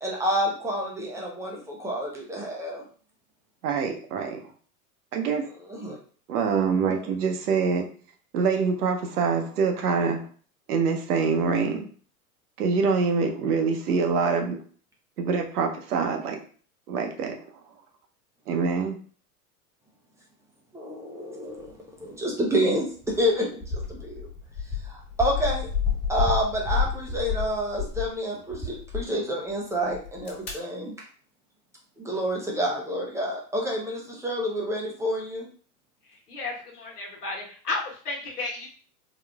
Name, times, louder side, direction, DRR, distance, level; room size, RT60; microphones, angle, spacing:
voice 1, 0.0-2.8 5.7-6.0 6.8-7.1 20.7-21.7 22.0-23.6 23.9-24.3 24.9-25.7 26.1-30.9 32.0-35.5, equal, 5° right, -1 dB, 0.3 m, -28 dB
voice 2, 3.6-4.4 5.1-5.4 6.3-7.9 8.3-10.2 10.7-11.9 12.6-14.6 15.2-16.4 16.9-17.4 18.5-19.0, right 5 dB, 80° right, 4 dB, 0.8 m, -25 dB
sound 1, 23.0-23.2 23.6-28.1 28.5-29.0 29.9-30.5, left 6 dB, 25° left, 1.2 m, -30 dB
voice 3, 36.3-38.7, left 3 dB, 90° left, -2 dB, 1.2 m, -33 dB
3.7 x 2.3 x 2.3 m, 0.43 s
hypercardioid pair, 100°, 45 cm